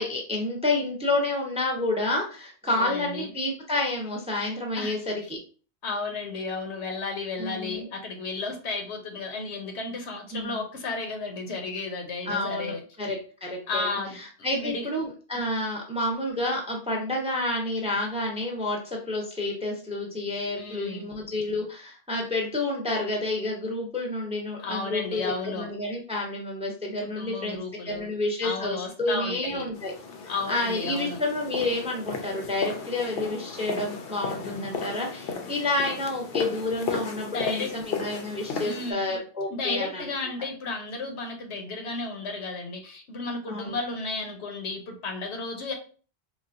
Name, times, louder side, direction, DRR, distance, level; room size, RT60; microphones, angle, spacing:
voice 1, 0.0-5.4 7.4-7.9 10.3-10.6 12.3-13.9 14.4-18.8 19.1-29.9 30.5-40.0 43.5-43.8, left 2 dB, 10° right, 0 dB, 0.5 m, -29 dB
voice 2, 2.7-3.3 4.8-5.0 5.8-12.8 13.7-14.9 20.6-21.1 24.6-25.7 27.0-28.1 28.4-29.7 30.3-31.2 37.2-37.7 38.6-39.2 39.5-45.7, left 3 dB, 80° left, 3 dB, 1.0 m, -33 dB
sound 1, 29.7-38.9, left 5 dB, 65° left, 0.7 m, -35 dB
4.0 x 2.1 x 2.5 m, 0.38 s
omnidirectional pair, 1.1 m